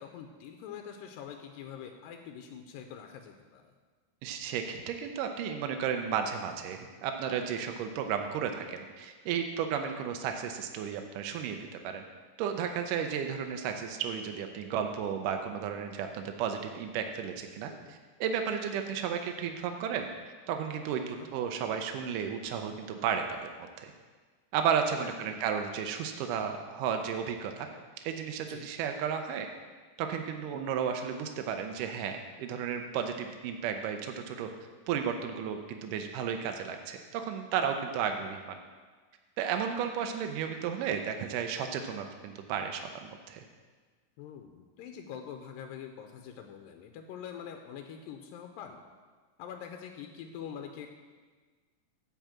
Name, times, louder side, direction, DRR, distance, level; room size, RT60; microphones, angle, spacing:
voice 1, 0.0-3.7 17.7-18.0 21.2-21.3 25.0-25.1 28.5-28.7 44.2-48.8 49.4-50.9, left 8 dB, 85° left, 5 dB, 2.3 m, -44 dB
voice 2, 4.2-11.6 11.8-12.0 12.4-20.1 20.5-23.9 24.5-27.7 28.0-29.5 30.0-34.5 34.9-38.6 39.4-43.4, right 7 dB, 80° right, 5 dB, 2.1 m, -33 dB
9.0 x 4.8 x 7.3 m, 1.4 s
omnidirectional pair, 4.0 m